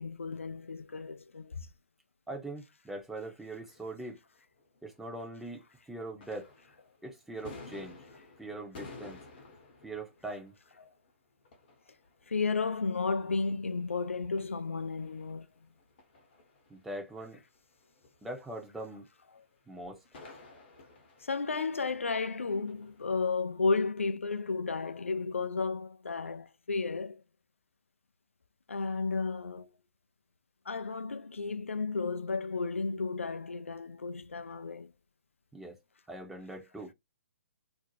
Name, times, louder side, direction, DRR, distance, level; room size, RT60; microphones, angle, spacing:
voice 1, 0.0-1.6 12.3-15.5 21.2-27.2 28.7-29.7 30.7-34.9, left 4 dB, 75° left, 0.4 m, -33 dB
voice 2, 2.3-4.2 4.8-6.5 7.0-8.0 8.4-9.2 9.8-10.5 16.7-17.4 18.2-19.1 19.7-20.0 35.5-35.8 36.1-36.9, right 2 dB, 5° right, 0.6 m, -42 dB
sound 1, 3.6-5.6 5.9-23.3, left 3 dB, 45° left, 0.9 m, -55 dB
2.5 x 2.1 x 3.0 m
figure-of-eight pair, 130°, 7 cm